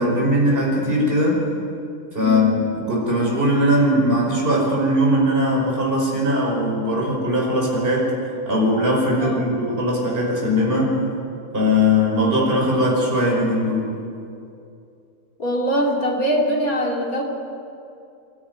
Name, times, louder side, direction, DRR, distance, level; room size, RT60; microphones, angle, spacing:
voice 1, 0.0-1.4 2.1-8.1 8.5-10.9 11.5-13.9, equal, 40° right, -3 dB, 5.6 m, -20 dB
voice 2, 15.4-17.2, equal, 90° left, -1 dB, 3.7 m, -22 dB
27.0 x 14.0 x 9.6 m, 2.5 s
omnidirectional pair, 1.5 m